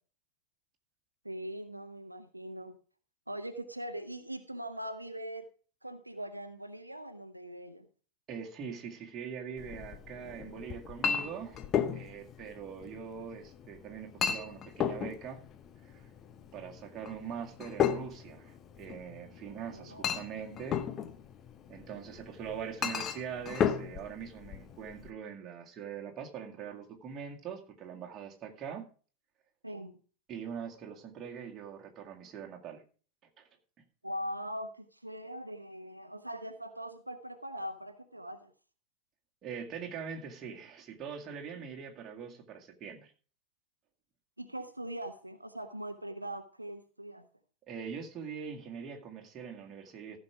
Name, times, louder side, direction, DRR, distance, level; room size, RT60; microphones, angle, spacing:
voice 1, 1.2-2.8 3.3-5.4 5.8-7.9 19.7-20.1 29.6-30.0 34.0-38.5 44.4-47.2, right 1 dB, 85° right, 8 dB, 0.9 m, -41 dB
voice 2, 8.3-11.6 11.9-15.4 15.8-16.1 16.5-20.8 21.7-28.9 30.3-32.8 33.4-33.5 39.4-43.1 47.7-50.2, right 7 dB, 30° right, 1 dB, 2.1 m, -42 dB
Chink clink, 9.6-25.1, left 8 dB, 30° left, 0.9 m, -35 dB
14.5 x 6.4 x 4.8 m, 0.40 s
figure-of-eight pair, 90°, 0 cm